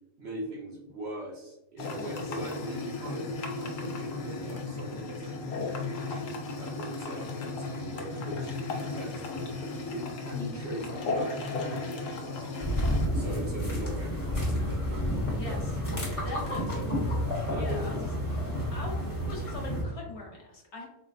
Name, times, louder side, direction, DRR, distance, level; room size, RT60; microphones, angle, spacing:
voice 1, 0.2-3.3 3.5-9.4 9.9-12.7 13.1-17.1 17.4-17.9, right 1 dB, 60° right, -4 dB, 1.2 m, -41 dB
sound 1, 1.8-13.1, left 3 dB, 85° left, 1.0 m, -35 dB
sound 2, 12.6-19.8, equal, 30° left, 1.1 m, -30 dB
voice 2, 15.3-15.6 16.2-16.8 17.5-18.0 18.4-19.0 19.3-20.9, left 2 dB, 60° left, -1 dB, 1.1 m, -41 dB
4.3 x 2.2 x 2.4 m, 0.89 s
omnidirectional pair, 1.3 m